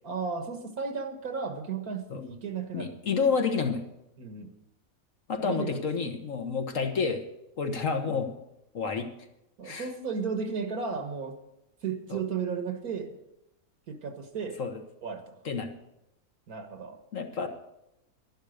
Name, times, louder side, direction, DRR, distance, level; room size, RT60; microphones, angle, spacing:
voice 1, 0.0-3.0 4.2-4.5 5.4-5.7 6.0-6.1 9.6-11.4 11.8-13.1 13.9-14.6 15.0-15.4 16.5-17.0, right 5 dB, 75° right, 7 dB, 2.0 m, -34 dB
voice 2, 2.7-3.8 5.3-7.2 7.6-8.3 8.7-9.1 9.6-9.9 12.1-12.2 14.6-14.8 15.4-15.7 17.1-17.5, left 5 dB, 60° left, 5 dB, 1.6 m, -29 dB
11.5 x 11.0 x 6.5 m, 0.87 s
omnidirectional pair, 1.6 m